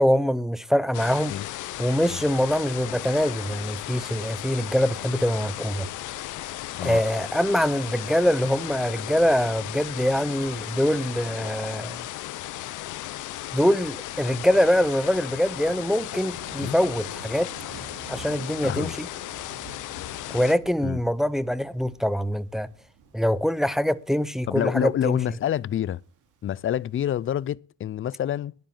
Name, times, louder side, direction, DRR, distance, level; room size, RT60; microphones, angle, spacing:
voice 1, 0.0-1.3 1.8-5.9 6.8-12.1 13.5-17.5 18.1-19.1 20.3-22.7 23.1-25.2, equal, ahead, 0.6 m, -24 dB
sound 1, 0.9-20.5, left 14 dB, 85° left, 0.9 m, -36 dB
Thunder, 16.3-27.4, right 4 dB, 85° right, 2.8 m, -48 dB
voice 2, 18.6-18.9 20.8-21.0 24.5-26.0 26.4-28.6, left 11 dB, 45° left, 0.5 m, -27 dB
10.5 x 9.3 x 7.4 m
cardioid pair, 90°, 30 cm